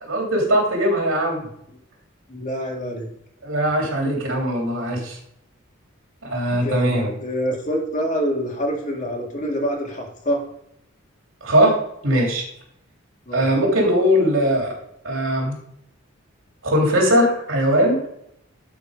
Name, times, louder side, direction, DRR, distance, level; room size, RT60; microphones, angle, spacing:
voice 1, 0.0-1.4 3.4-5.2 6.2-7.1 11.4-11.8 12.0-12.4 13.3-14.7 15.0-15.6 16.6-18.0, equal, 80° right, 0 dB, 3.0 m, -20 dB
voice 2, 2.3-3.1 6.5-10.4 13.3-13.5, equal, 40° left, 0 dB, 2.1 m, -26 dB
12.0 x 4.6 x 5.1 m, 0.73 s
head